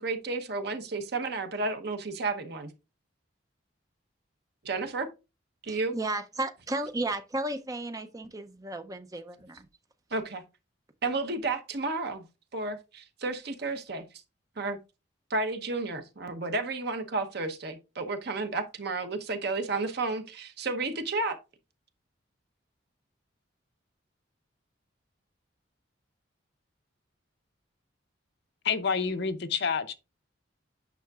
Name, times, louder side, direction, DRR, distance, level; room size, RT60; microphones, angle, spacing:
voice 1, 0.0-2.7 4.6-5.1 5.6-5.9 10.1-10.4 11.0-12.2 12.5-14.0 14.6-14.8 15.3-21.4, right 3 dB, 55° right, 0.9 m, -32 dB
voice 2, 5.7-9.7, right 2 dB, 20° right, 0.5 m, -34 dB
voice 3, 28.6-29.9, left 6 dB, 60° left, 0.6 m, -28 dB
9.2 x 5.7 x 2.4 m
head